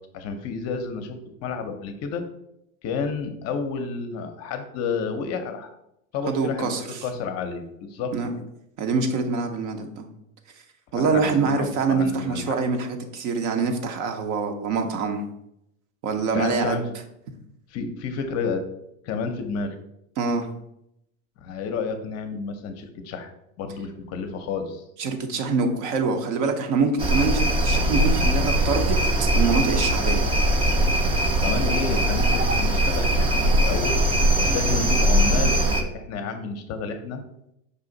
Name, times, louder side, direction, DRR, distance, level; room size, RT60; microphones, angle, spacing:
voice 1, 0.1-2.2 2.8-5.8 6.1-8.1 11.0-12.6 16.3-16.8 17.7-18.6 19.0-19.7 21.4-23.3 23.6-24.8 31.3-34.0 34.4-37.2, left 5 dB, 40° left, 7 dB, 0.6 m, -30 dB
voice 2, 6.3-7.0 8.1-8.3 8.8-10.1 10.9-15.3 16.0-16.8 20.2-20.5 25.0-30.2, right 4 dB, 55° right, 6 dB, 0.8 m, -25 dB
sound 1, 27.0-35.8, right 1 dB, 15° right, 0.3 m, -21 dB
5.1 x 2.5 x 3.8 m, 0.79 s
hypercardioid pair, 110°, 39 cm